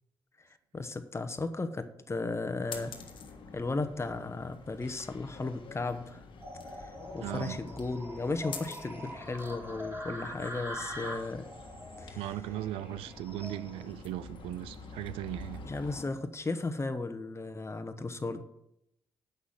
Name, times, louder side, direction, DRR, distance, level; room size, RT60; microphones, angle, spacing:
voice 1, 0.7-2.9 3.5-6.2 6.7-11.5 12.0-12.2 15.6-18.4, left 3 dB, 30° left, 1.1 m, -35 dB
sound 1, 2.7-16.1, left 4 dB, 65° left, 1.5 m, -47 dB
sound 2, 6.4-13.9, equal, 25° right, 3.2 m, -44 dB
voice 2, 7.2-7.6 12.2-15.6, right 14 dB, 85° right, 0.4 m, -38 dB
8.1 x 6.3 x 7.4 m
supercardioid pair, 50°, 9 cm